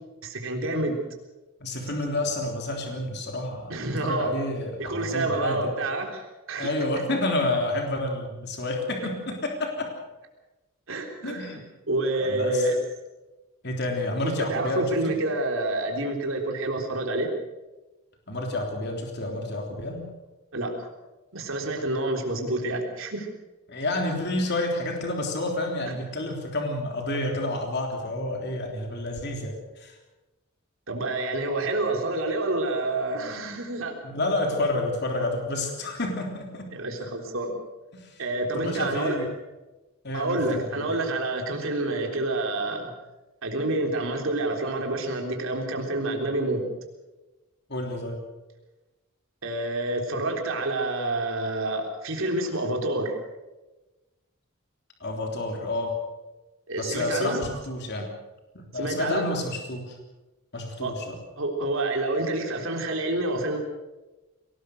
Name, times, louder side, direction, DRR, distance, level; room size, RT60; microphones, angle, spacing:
voice 1, 0.2-1.0 3.7-4.3 4.8-6.7 10.9-11.6 11.9-12.8 14.2-17.3 20.5-20.9 21.3-23.3 30.9-34.0 36.7-37.6 38.2-39.2 40.1-42.9 43.4-46.6 49.4-53.2 56.7-57.4 58.7-59.3 60.8-60.9 61.4-63.6, right 2 dB, 65° right, 2 dB, 3.6 m, -28 dB
voice 2, 1.6-5.7 6.6-9.8 11.2-11.6 12.2-12.7 13.6-15.2 18.3-20.0 23.7-30.0 34.0-36.6 37.9-38.2 38.6-39.3 40.0-40.9 47.7-48.2 55.0-55.9 56.8-58.1 58.5-60.0 60.5-61.2, left 2 dB, 50° left, 1 dB, 3.5 m, -29 dB
23.5 x 19.0 x 6.5 m, 1.1 s
head